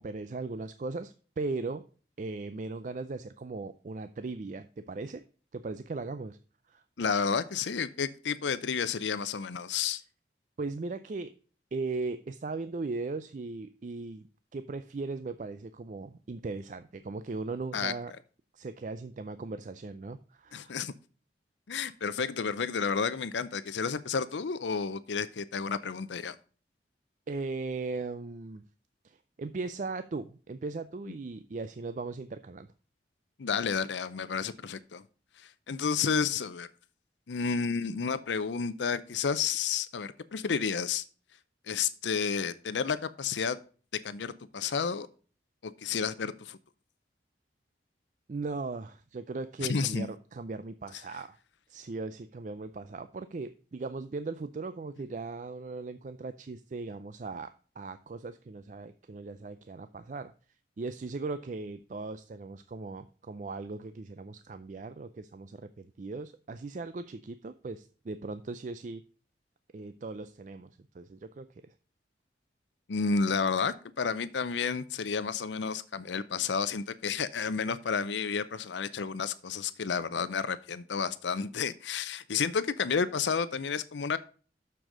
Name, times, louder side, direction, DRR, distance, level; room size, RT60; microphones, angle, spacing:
voice 1, 0.0-1.8 2.2-5.2 5.5-6.4 6.7-6.8 10.6-11.3 11.7-14.3 14.5-18.1 18.5-20.8 27.3-28.6 29.0-32.7 48.3-51.4 51.7-60.3 60.8-69.0 69.7-70.7 70.9-71.7, right 3 dB, 45° right, 11 dB, 0.4 m, -38 dB
voice 2, 7.0-10.0 17.7-17.9 20.5-20.9 21.7-26.4 33.4-35.0 35.4-36.7 37.3-41.0 41.7-43.6 44.0-45.1 45.6-46.6 49.6-50.1 72.9-84.2, left 5 dB, 85° left, 15 dB, 0.6 m, -31 dB
6.9 x 6.3 x 4.8 m, 0.39 s
head